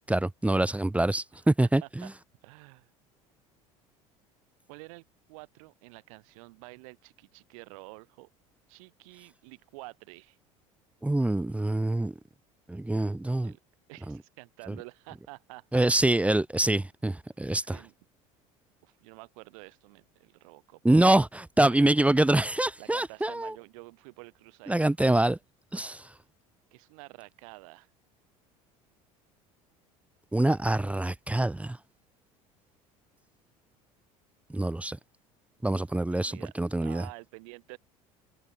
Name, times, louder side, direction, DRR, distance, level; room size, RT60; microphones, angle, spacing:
voice 1, 0.1-2.1 11.0-12.1 12.7-13.5 14.1-14.2 15.7-17.8 20.8-23.5 24.7-25.4 25.7-26.0 30.3-31.8 34.5-35.0 35.6-37.0, right 1 dB, 5° right, 0.9 m, -25 dB
voice 2, 2.4-2.9 4.7-8.3 8.7-10.4 13.4-13.6 13.9-15.9 17.5-17.9 18.8-20.8 21.7-21.9 22.8-24.8 26.7-27.9 36.1-36.5 36.8-37.8, right 28 dB, 70° right, 6.8 m, -49 dB
hypercardioid pair, 70°, 18 cm